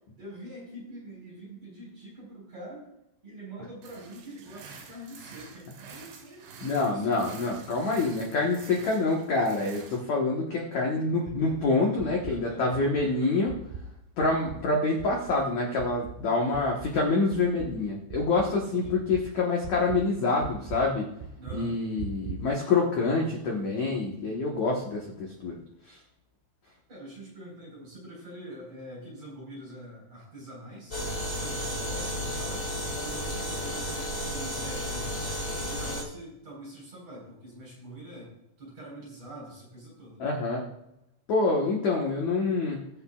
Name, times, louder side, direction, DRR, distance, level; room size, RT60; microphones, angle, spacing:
voice 1, 0.2-2.9 3.2-7.2 11.0-13.1 18.7-19.1 21.4-21.8 26.9-31.0 31.3-32.7 33.0-35.3 35.6-38.3 38.6-40.2, right 1 dB, 35° right, -5 dB, 5.2 m, -45 dB
sound 1, 3.8-10.0, right 5 dB, 65° right, 3.5 m, -48 dB
voice 2, 6.6-13.6 14.2-21.1 21.5-25.6 25.9-26.0 40.2-40.7 41.3-42.9, left 3 dB, 75° left, -2 dB, 1.7 m, -26 dB
sound 2, 11.3-11.6 12.0-12.4 12.7-13.1 13.5-13.9 14.2-14.7 15.0-15.4 15.8-16.2 16.5-17.0 17.3-17.7 18.1-18.5 18.8-19.3 19.6-20.0 20.4-20.8 21.2-21.6 22.0-22.4, right 6 dB, 85° right, 2.3 m, -40 dB
sound 3, 30.9-36.0, equal, 45° left, 0.8 m, -32 dB
21.5 x 7.2 x 2.4 m, 0.85 s
omnidirectional pair, 5.4 m